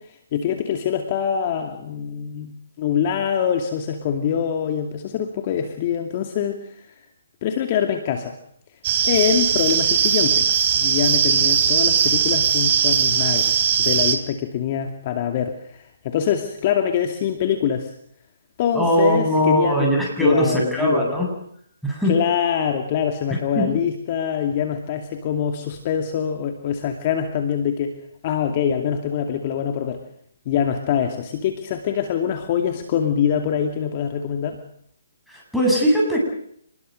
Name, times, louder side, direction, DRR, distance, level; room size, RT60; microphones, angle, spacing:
voice 1, 0.0-6.9 7.4-8.3 9.0-10.5 10.8-17.9 18.6-19.9 20.2-21.2 22.1-27.9 28.2-30.0 30.5-34.6, left 8 dB, 35° left, 5 dB, 2.5 m, -24 dB
sound 1, 8.8-14.2, right 8 dB, 40° right, 3.4 m, -19 dB
voice 2, 18.7-21.3 21.8-22.1 23.5-23.7 35.3-36.2, equal, ahead, -3 dB, 7.9 m, -20 dB
28.0 x 20.5 x 6.7 m, 0.68 s
hypercardioid pair, 150°, 0 cm